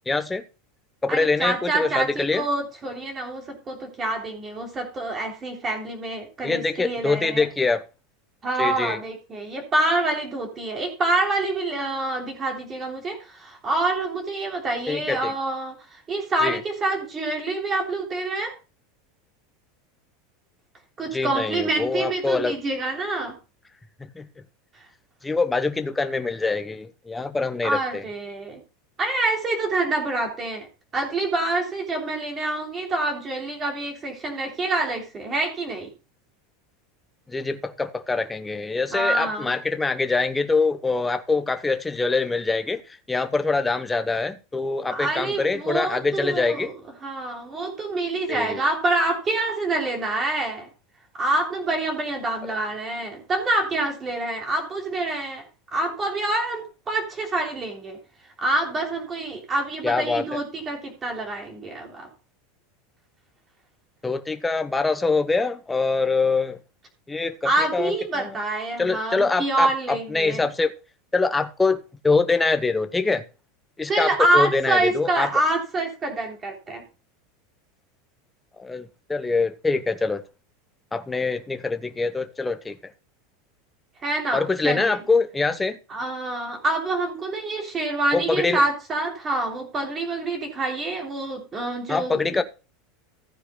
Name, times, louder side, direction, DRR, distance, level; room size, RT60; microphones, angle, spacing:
voice 1, 0.1-0.4 1.0-2.4 6.4-7.8 8.6-9.0 14.9-15.3 16.4-16.6 21.1-22.5 24.1-24.3 25.2-28.0 37.3-42.8 43.1-46.7 48.3-48.6 59.8-60.3 64.0-66.6 67.1-68.4 68.8-70.7 71.1-73.2 73.8-75.3 78.6-80.2 80.9-82.9 84.3-85.8 88.1-88.6 91.9-92.4, left 3 dB, 10° left, 0.9 m, -24 dB
voice 2, 1.1-7.5 8.4-18.5 21.0-23.4 27.6-28.6 29.0-30.7 30.9-35.9 38.9-39.6 44.9-46.7 47.0-50.7 51.1-55.5 55.7-58.0 58.4-62.1 67.4-70.5 73.9-76.8 84.0-85.0 85.9-92.4, right 2 dB, 20° right, 3.2 m, -26 dB
15.5 x 9.7 x 2.3 m
supercardioid pair, 150°, 0 cm